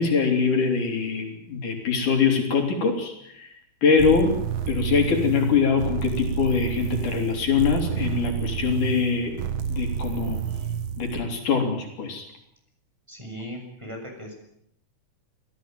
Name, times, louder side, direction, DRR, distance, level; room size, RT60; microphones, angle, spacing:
voice 1, 0.0-3.5 3.8-4.4 4.7-9.4 9.7-10.4 11.0-12.3, left 5 dB, 75° left, 3 dB, 5.1 m, -23 dB
sound 1, 4.0-11.2, right 8 dB, 65° right, 1.3 m, -30 dB
voice 2, 13.1-14.3, equal, 10° right, 2 dB, 6.4 m, -38 dB
27.0 x 16.5 x 9.1 m, 0.74 s
omnidirectional pair, 3.6 m